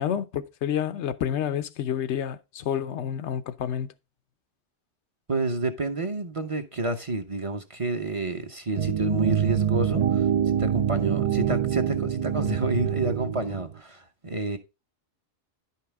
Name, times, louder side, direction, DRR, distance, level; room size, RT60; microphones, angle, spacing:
voice 1, 0.0-3.9, left 9 dB, 80° left, 0.9 m, -29 dB
voice 2, 5.3-10.3 10.6-14.6, right 2 dB, 30° right, 0.9 m, -29 dB
sound 1, 8.8-13.8, right 9 dB, 60° right, 0.3 m, -25 dB
10.5 x 5.8 x 3.4 m
omnidirectional pair, 1.2 m